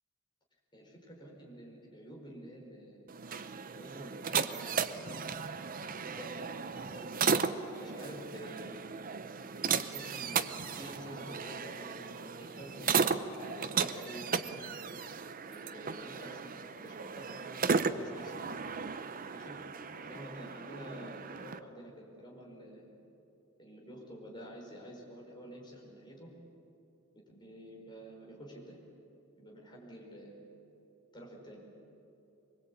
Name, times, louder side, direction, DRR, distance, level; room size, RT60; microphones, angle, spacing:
voice 1, 0.7-3.1 3.7-5.3 6.0-7.2 7.6-8.9 9.7-14.9 15.5-18.6 19.3-19.6 20.0-22.9 23.6-26.3 27.3-28.8 29.4-30.5 31.1-31.6, equal, 20° left, -2 dB, 4.9 m, -49 dB
sound 1, 3.1-21.6, right 5 dB, 40° right, 0.7 m, -35 dB
23.5 x 21.5 x 8.7 m, 3.0 s
head